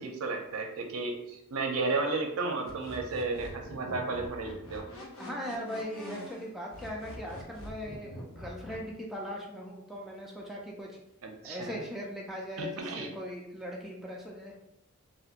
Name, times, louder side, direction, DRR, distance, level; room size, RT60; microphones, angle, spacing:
voice 1, 0.0-4.8 11.2-11.8 12.6-13.1, right 3 dB, 70° right, 3 dB, 0.5 m, -33 dB
sound 1, 2.7-8.8, left 1 dB, 65° left, 0.7 m, -45 dB
voice 2, 5.2-11.0 11.4-14.5, equal, ahead, -3 dB, 0.3 m, -39 dB
2.8 x 2.5 x 2.4 m, 0.81 s
head